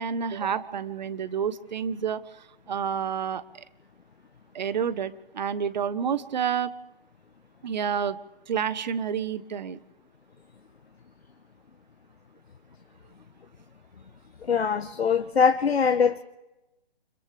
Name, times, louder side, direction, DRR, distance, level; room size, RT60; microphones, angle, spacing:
voice 1, 0.0-3.6 4.5-6.7 7.6-8.2 8.5-9.8, right 7 dB, 45° right, 15 dB, 1.1 m, -29 dB
voice 2, 14.4-16.2, left 6 dB, 75° left, 8 dB, 1.2 m, -22 dB
29.0 x 26.0 x 3.4 m, 0.96 s
figure-of-eight pair, 150°, 31 cm